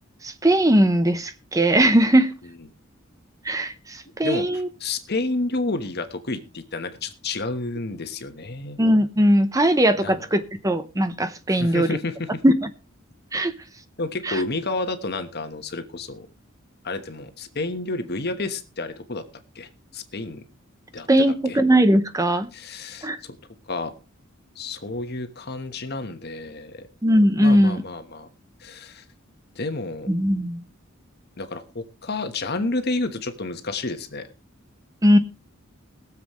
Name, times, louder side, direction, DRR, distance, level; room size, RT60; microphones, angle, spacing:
voice 1, 0.2-2.3 3.4-4.7 8.8-12.0 12.4-12.7 13.3-13.5 14.2-14.4 21.1-22.5 23.0-23.2 27.0-27.8 30.1-30.6 35.0-35.2, right 1 dB, 15° right, 0.8 m, -19 dB
voice 2, 4.2-8.8 10.0-10.2 11.5-12.4 14.0-16.3 16.8-19.2 19.5-20.4 20.9-21.1 21.5-21.6 22.5-23.4 23.7-23.9 24.5-26.9 27.4-28.3 28.6-29.0 29.5-30.1 31.4-34.2, left 2 dB, 50° left, 1.2 m, -30 dB
21.5 x 7.4 x 3.1 m
head